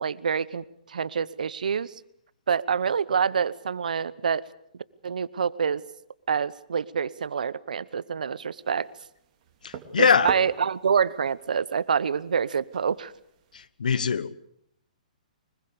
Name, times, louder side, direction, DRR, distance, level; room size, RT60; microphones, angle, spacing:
voice 1, 0.0-1.9 2.5-4.4 5.0-5.8 6.3-8.9 10.0-13.1, right 6 dB, 75° right, 1.0 m, -26 dB
sound 1, 8.6-13.7, right 8 dB, 45° right, 3.3 m, -43 dB
voice 2, 9.6-10.3 13.5-14.5, left 6 dB, 75° left, 1.2 m, -23 dB
24.5 x 21.5 x 6.8 m
hypercardioid pair, 125°, 4 cm